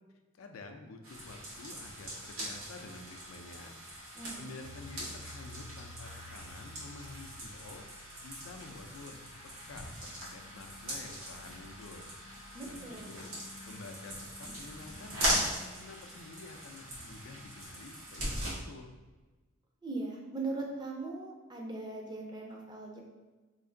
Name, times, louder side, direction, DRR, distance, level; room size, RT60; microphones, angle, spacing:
voice 1, 0.3-3.8 4.4-7.8 8.2-9.3 9.7-12.1 12.6-13.3 13.7-18.9, left 3 dB, 75° left, 5 dB, 0.4 m, -49 dB
sound 1, 1.0-18.5, right 1 dB, 90° right, 1.3 m, -40 dB
voice 2, 4.1-4.5 12.5-13.1 19.8-23.0, right 3 dB, 20° right, 0 dB, 0.4 m, -39 dB
sound 2, 4.6-15.5, left 2 dB, 65° right, 0.9 m, -54 dB
3.2 x 2.5 x 3.7 m, 1.3 s
head